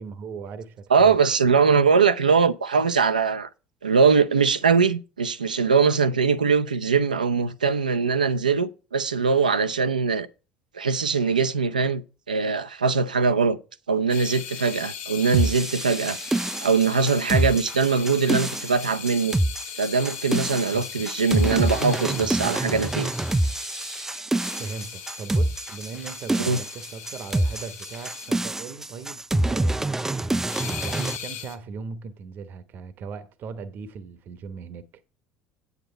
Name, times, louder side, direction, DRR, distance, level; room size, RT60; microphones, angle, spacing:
voice 1, 0.0-1.2 20.7-20.9 24.6-34.8, right 5 dB, 50° right, 0.9 m, -38 dB
voice 2, 0.9-3.5 3.8-10.3 10.7-12.0 12.3-13.6 13.9-16.2 16.6-19.4 19.8-23.1 26.4-26.6, right 5 dB, 85° right, 0.6 m, -21 dB
sound 1, 14.1-28.3 30.5-31.6, left 9 dB, 55° left, 1.2 m, -39 dB
sound 2, 15.3-31.2, right 1 dB, 10° right, 0.4 m, -26 dB
8.8 x 8.2 x 4.4 m
figure-of-eight pair, 60°, 4 cm